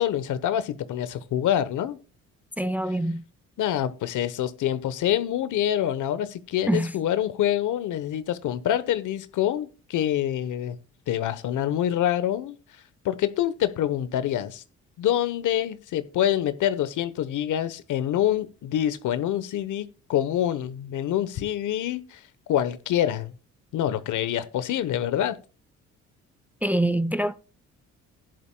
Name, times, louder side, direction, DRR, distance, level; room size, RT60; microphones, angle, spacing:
voice 1, 0.0-2.0 3.6-10.8 11.1-12.6 13.0-14.6 15.0-22.2 22.5-23.3 23.7-25.4, left 11 dB, 75° left, 1.1 m, -26 dB
voice 2, 2.6-3.2 6.7-6.9 26.6-27.3, right 1 dB, 5° right, 0.5 m, -24 dB
15.5 x 11.0 x 2.3 m
cardioid pair, 80°, 31 cm